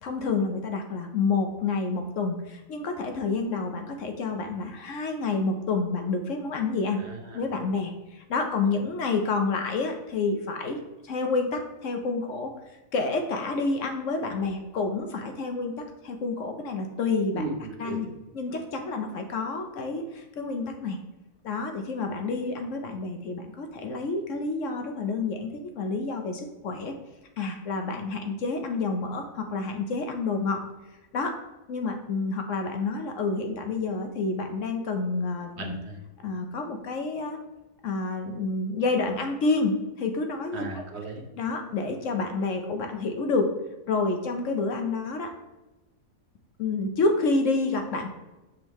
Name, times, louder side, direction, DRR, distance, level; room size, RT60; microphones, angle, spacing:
voice 1, 0.0-7.0 7.3-10.8 11.0-12.5 12.9-17.4 17.8-18.1 18.3-21.0 21.4-26.9 27.4-30.6 31.1-31.4 31.7-35.8 36.2-37.4 37.8-40.6 41.4-43.5 43.9-45.4 46.6-48.1, left 3 dB, 60° left, 4 dB, 0.9 m, -29 dB
voice 2, 7.0-7.4 17.3-18.1 35.6-36.0 40.5-41.2, right 2 dB, 50° right, 2 dB, 0.9 m, -36 dB
6.3 x 5.2 x 3.0 m, 1.1 s
omnidirectional pair, 1.7 m